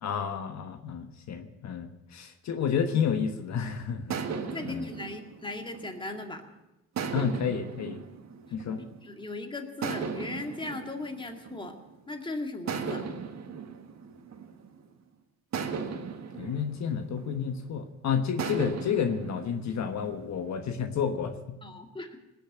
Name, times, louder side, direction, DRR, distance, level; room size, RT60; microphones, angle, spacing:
voice 1, 0.0-4.2 4.6-4.9 7.1-8.0 8.5-8.9 16.3-21.6, left 7 dB, 65° left, 7 dB, 1.3 m, -30 dB
sound 1, 2.9-3.5 4.1-6.4 7.0-9.1 9.8-12.1 12.7-14.9 15.5-17.8 18.4-20.6, right 6 dB, 65° right, 1.7 m, -37 dB
voice 2, 4.4-6.4 8.8-11.8 12.1-13.1 21.6-22.2, left 2 dB, 15° left, 4 dB, 2.1 m, -38 dB
19.5 x 7.1 x 9.1 m, 0.96 s
cardioid pair, 90°, 30 cm